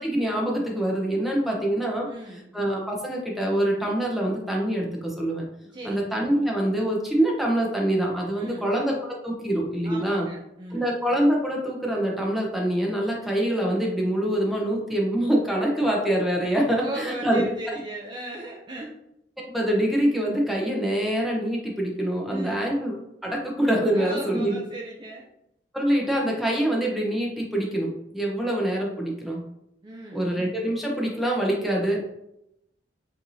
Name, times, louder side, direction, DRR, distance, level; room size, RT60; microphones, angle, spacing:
voice 1, 0.0-2.1 2.5-5.4 5.8-8.9 9.2-10.3 10.7-17.4 19.4-23.0 23.2-24.6 25.7-29.4 30.1-32.0, right 1 dB, ahead, -2 dB, 0.7 m, -25 dB
voice 2, 2.1-2.5 5.6-6.0 8.4-8.7 9.8-10.8 16.8-18.9 22.3-22.8 23.9-25.3 29.8-30.3, right 1 dB, 25° right, -1 dB, 0.4 m, -37 dB
4.5 x 2.7 x 2.6 m, 0.82 s
head